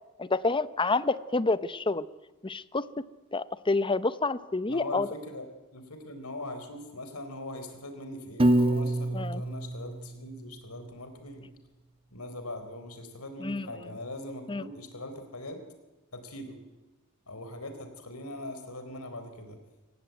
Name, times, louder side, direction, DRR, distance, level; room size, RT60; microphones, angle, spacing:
voice 1, 0.2-2.1 2.4-2.8 3.3-5.1 9.1-9.4 13.4-13.7 14.5-14.6, left 3 dB, 25° left, 16 dB, 0.8 m, -28 dB
voice 2, 4.7-5.5 5.7-11.5 12.1-15.6 16.1-16.6 17.3-19.6, left 1 dB, 85° left, 8 dB, 4.0 m, -41 dB
Piano, 8.4-10.6, right 1 dB, 25° right, 1.2 m, -26 dB
24.0 x 18.0 x 9.1 m, 1.1 s
head